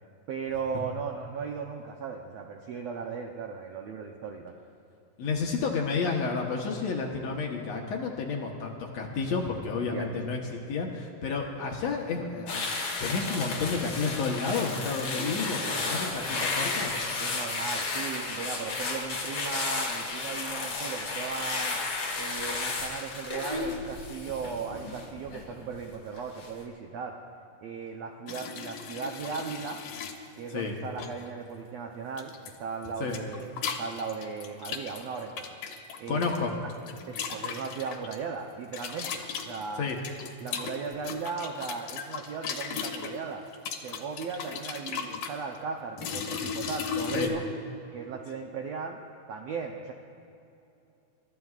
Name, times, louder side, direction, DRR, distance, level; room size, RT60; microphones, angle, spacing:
voice 1, 0.3-4.5 9.9-10.4 15.1-16.5 17.2-21.8 22.1-27.1 27.6-29.8 30.3-35.4 36.0-36.3 37.1-39.9 40.4-43.4 43.8-47.4 47.9-49.0 49.3-49.9, right 5 dB, 75° right, 2 dB, 1.5 m, -37 dB
voice 2, 5.2-12.6 13.0-16.9 30.5-30.7 33.0-33.2 36.1-36.6 39.8-40.0 47.1-47.3, left 4 dB, 65° left, 0 dB, 2.0 m, -31 dB
sound 1, 12.5-25.8 26.2-26.5, left 3 dB, 45° left, 2.1 m, -33 dB
sound 2, 28.3-30.2 31.0-31.3 32.2-32.6 32.8-36.4 36.7-38.2 38.7-43.1 43.5-45.4 46.0-47.3, left 7 dB, 80° left, 2.8 m, -36 dB
28.0 x 13.5 x 2.4 m, 2.8 s
omnidirectional pair, 3.9 m